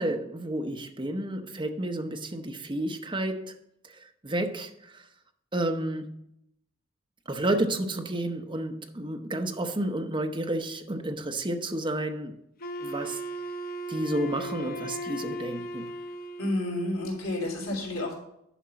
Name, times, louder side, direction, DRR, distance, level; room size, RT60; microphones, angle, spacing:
voice 1, 0.0-3.5 3.8-3.9 4.2-5.0 5.5-6.1 7.3-12.4 12.8-13.2 13.9-15.9, right 1 dB, 25° right, 0.8 m, -31 dB
Wind instrument woodwind instrument, 12.6-16.7, right 1 dB, 45° left, 0.7 m, -36 dB
voice 2, 16.4-18.1, left 1 dB, 80° left, 3.2 m, -30 dB
10.0 x 5.4 x 5.7 m
head